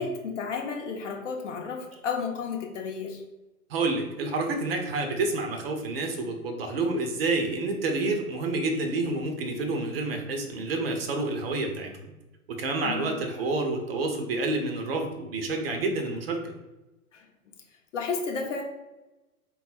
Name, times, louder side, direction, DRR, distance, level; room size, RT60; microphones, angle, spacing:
voice 1, 0.0-3.2 12.8-13.1 17.1-17.2 17.9-18.6, left 5 dB, 55° left, 2 dB, 0.8 m, -32 dB
voice 2, 3.7-12.1 12.6-16.5, right 2 dB, 40° right, 4 dB, 0.6 m, -29 dB
3.6 x 2.3 x 4.2 m, 1.0 s
figure-of-eight pair, 110°, 44 cm